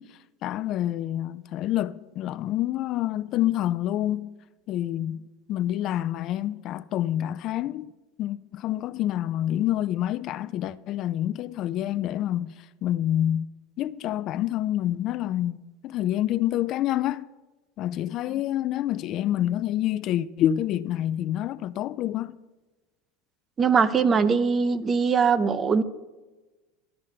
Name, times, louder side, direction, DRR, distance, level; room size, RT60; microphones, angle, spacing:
voice 1, 0.0-4.3 4.7-7.9 8.2-13.5 13.8-15.6 15.8-17.3 17.8-22.4, left 12 dB, 50° left, 0.4 m, -27 dB
voice 2, 23.6-25.8, right 5 dB, 30° right, 0.7 m, -21 dB
12.5 x 5.4 x 6.6 m
supercardioid pair, 105°, 0 cm